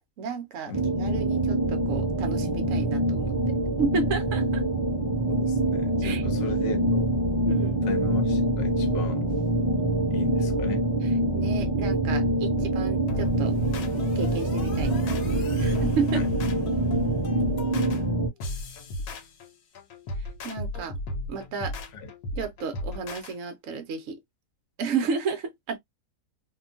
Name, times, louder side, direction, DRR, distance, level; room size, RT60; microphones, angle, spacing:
voice 1, 0.2-4.6 6.0-6.2 7.4-7.9 11.0-13.5 14.1-16.3 17.0-17.2 20.2-21.0 21.3-21.8 22.3-24.2 24.8-25.8, right 5 dB, 65° right, 0.8 m, -32 dB
sound 1, 0.7-18.3, right 1 dB, 25° right, 0.8 m, -25 dB
voice 2, 5.2-7.1 7.9-9.3 10.1-10.8 16.1-16.2 22.0-22.1, left 4 dB, 50° left, 0.8 m, -36 dB
sound 2, 13.1-23.3, left 1 dB, 70° left, 1.2 m, -35 dB
2.8 x 2.2 x 2.5 m
omnidirectional pair, 1.8 m